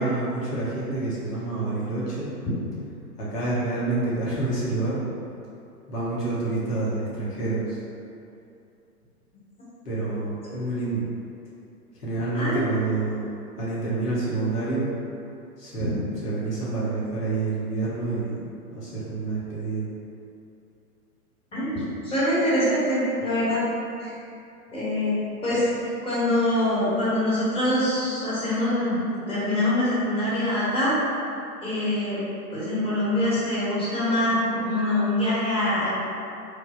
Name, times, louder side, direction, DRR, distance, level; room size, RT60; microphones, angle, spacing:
voice 1, 0.0-2.3 3.2-5.0 5.9-7.8 9.8-11.1 11.9-13.2 13.6-14.9 15.6-19.9, right 3 dB, 80° left, -8 dB, 1.3 m, -28 dB
voice 2, 21.5-23.6 24.0-24.1 24.7-25.1 25.4-30.9 31.6-32.2 32.5-35.9, left 1 dB, 10° left, -10 dB, 1.2 m, -24 dB
3.3 x 2.3 x 4.1 m, 2.7 s
figure-of-eight pair, 110°, 47 cm